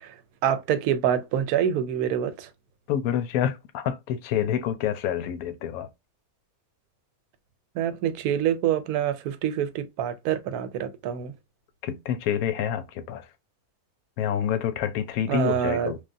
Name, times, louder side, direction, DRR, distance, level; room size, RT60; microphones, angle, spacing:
voice 1, 0.4-2.5 7.8-11.3 15.3-15.9, right 9 dB, 90° right, 1.1 m, -26 dB
voice 2, 2.9-5.9 11.8-13.3 14.2-16.0, left 9 dB, 80° left, 1.0 m, -27 dB
3.3 x 2.2 x 2.5 m
omnidirectional pair, 1.5 m